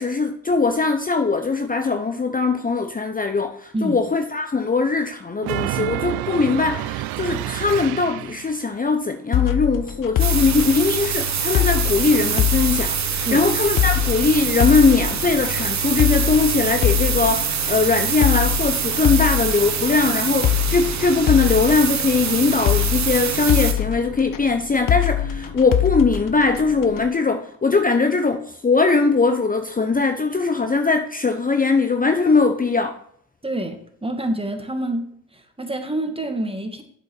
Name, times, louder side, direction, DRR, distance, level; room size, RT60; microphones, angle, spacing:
voice 1, 0.0-33.0, left 4 dB, 25° left, 7 dB, 0.9 m, -20 dB
sound 1, 5.4-8.6, right 15 dB, 90° right, 0.5 m, -28 dB
sound 2, 9.3-27.1, left 12 dB, 65° left, 0.9 m, -24 dB
sound 3, 10.2-23.7, right 7 dB, 50° right, 1.3 m, -25 dB
voice 2, 33.4-35.0 35.3-36.8, right 1 dB, 15° right, 5 dB, 2.1 m, -27 dB
7.8 x 5.9 x 6.2 m, 0.64 s
supercardioid pair, 55°, 36 cm